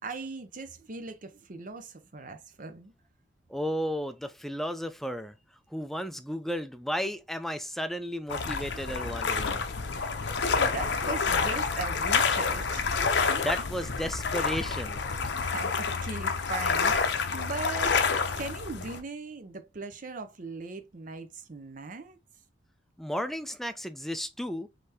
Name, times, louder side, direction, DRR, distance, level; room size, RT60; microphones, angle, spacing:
voice 1, 0.0-2.9 9.8-10.1 10.4-13.3 15.4-22.2, right 3 dB, 45° right, 0.6 m, -40 dB
voice 2, 3.5-5.3 5.7-9.6 13.3-15.0 23.0-24.7, equal, ahead, 0.4 m, -33 dB
sound 1, 8.3-19.0, left 5 dB, 65° left, 0.7 m, -28 dB
5.0 x 3.3 x 2.8 m
head